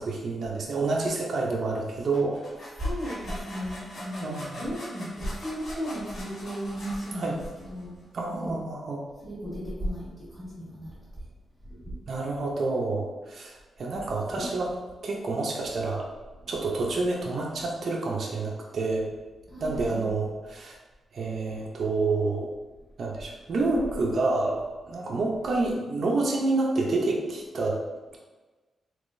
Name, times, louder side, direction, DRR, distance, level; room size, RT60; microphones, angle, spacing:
voice 1, 0.0-2.4 4.2-4.6 7.1-7.3 8.1-9.0 12.1-14.7 15.0-16.1 16.5-19.1 19.6-20.8 21.1-22.5 23.0-27.8, right 3 dB, 55° right, -2 dB, 0.5 m, -28 dB
sound 1, 2.1-7.8, left 1 dB, 60° left, 1.3 m, -42 dB
voice 2, 2.8-7.4 7.7-7.9 8.3-8.6 9.2-11.3 11.6-12.1 14.4-14.5 16.4-16.9 19.4-20.0 21.5-21.6 23.7-24.0, equal, 5° right, -10 dB, 1.4 m, -35 dB
3.7 x 2.8 x 2.5 m, 1.3 s
cardioid pair, 105°, 0 cm